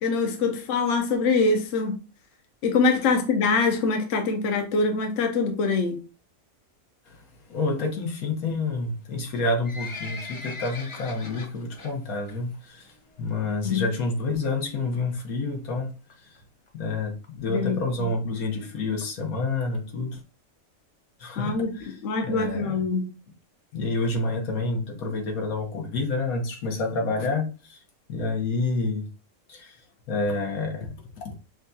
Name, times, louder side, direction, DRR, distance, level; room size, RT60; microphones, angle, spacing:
voice 1, 0.0-2.0 2.6-6.0 13.6-13.8 17.5-18.1 21.4-21.7 22.0-23.1, left 4 dB, 65° left, 1.0 m, -24 dB
voice 2, 7.5-12.9 13.2-15.9 16.2-16.4 16.7-20.2 21.2-22.0 22.2-22.8 23.7-27.8 28.1-29.1 29.5-29.8 30.1-31.3, left 3 dB, 85° left, 1.4 m, -28 dB
Livestock farm animals working animals, 9.3-11.9 12.3-12.6 12.9-13.0 13.6-13.7 14.0-14.1 14.3-14.4 14.9-15.2 15.8-15.9 16.1-16.2 16.4-16.5 16.7-16.8 17.2-17.3 17.8-17.9 18.4-18.5, left 3 dB, 30° left, 0.5 m, -39 dB
6.3 x 2.3 x 2.6 m
omnidirectional pair, 1.5 m